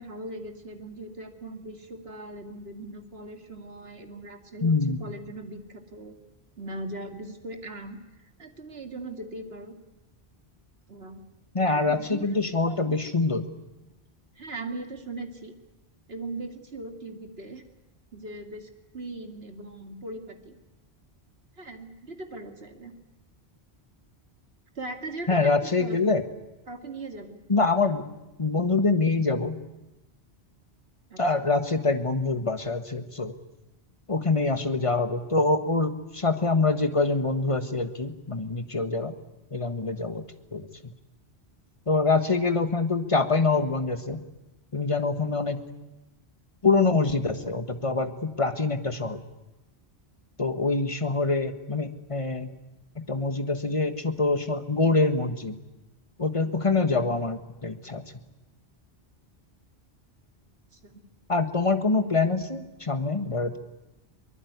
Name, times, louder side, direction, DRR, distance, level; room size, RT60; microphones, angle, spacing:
voice 1, 0.0-6.1 6.6-8.0 8.4-9.7 10.9-11.2 11.7-12.3 12.6-13.0 14.4-15.5 16.1-17.6 18.1-20.5 21.6-22.9 24.8-26.1 26.7-27.4 31.1-31.2 60.7-61.0, right 2 dB, 70° right, 6 dB, 2.6 m, -39 dB
voice 2, 4.6-5.0 11.5-13.4 25.3-26.2 27.5-28.0 28.4-29.6 31.2-33.3 34.1-39.2 39.5-40.2 40.5-40.7 41.9-44.2 44.7-45.6 46.6-49.2 50.4-52.5 52.9-55.6 56.2-58.0 61.3-63.6, left 3 dB, 30° left, 9 dB, 1.6 m, -25 dB
23.5 x 21.0 x 9.5 m, 0.99 s
omnidirectional pair, 1.1 m